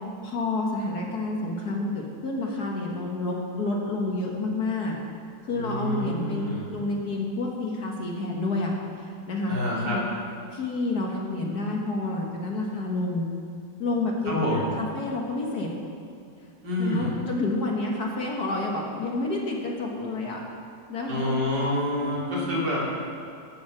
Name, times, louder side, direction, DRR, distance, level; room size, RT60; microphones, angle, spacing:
voice 1, 0.2-5.0 5.4-9.6 9.8-10.0 10.5-13.3 13.8-15.7 16.8-20.4 20.9-21.3 22.0-22.6, left 2 dB, 55° left, -1 dB, 1.8 m, -29 dB
voice 2, 5.5-6.7 9.5-10.0 14.2-14.7 16.6-17.2 21.1-23.1, left 1 dB, 65° right, -6 dB, 3.5 m, -28 dB
14.0 x 7.2 x 6.0 m, 2.5 s
omnidirectional pair, 2.1 m